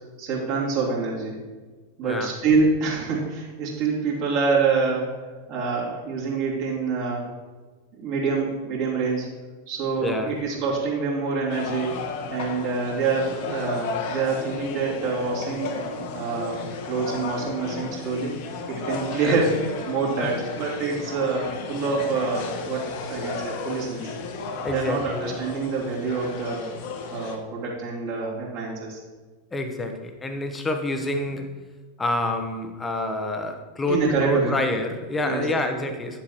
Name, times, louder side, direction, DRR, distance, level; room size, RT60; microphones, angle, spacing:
voice 1, 0.2-1.4 2.0-5.1 5.5-7.3 8.0-9.3 9.7-15.8 16.1-18.3 18.7-19.6 19.9-22.8 23.1-24.1 24.7-26.6 27.1-29.0 33.9-34.6 35.2-35.5, right 4 dB, 45° right, -4 dB, 2.7 m, -26 dB
voice 2, 2.0-2.3 10.0-10.4 19.2-19.3 20.2-20.3 24.6-25.3 29.5-31.6 32.0-36.2, left 1 dB, 15° left, 6 dB, 0.9 m, -27 dB
sound 1, 11.5-27.4, left 3 dB, 50° left, 1.0 m, -34 dB
9.9 x 7.4 x 3.1 m, 1.4 s
figure-of-eight pair, 90°, 0 cm